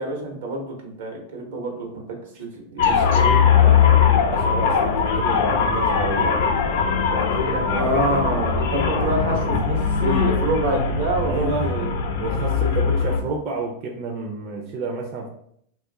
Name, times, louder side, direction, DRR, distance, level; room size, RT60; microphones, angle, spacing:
voice 1, 0.0-2.9 7.7-11.9 12.5-12.7, right 2 dB, 80° right, 1 dB, 0.9 m, -27 dB
sound 1, 2.8-13.2, left 6 dB, 70° left, 0.5 m, -20 dB
voice 2, 2.8-6.8 7.1-7.9 11.2-11.7 12.2-15.3, right 3 dB, 45° right, 0 dB, 0.5 m, -30 dB
2.5 x 2.4 x 3.8 m, 0.69 s
supercardioid pair, 140°, 0 cm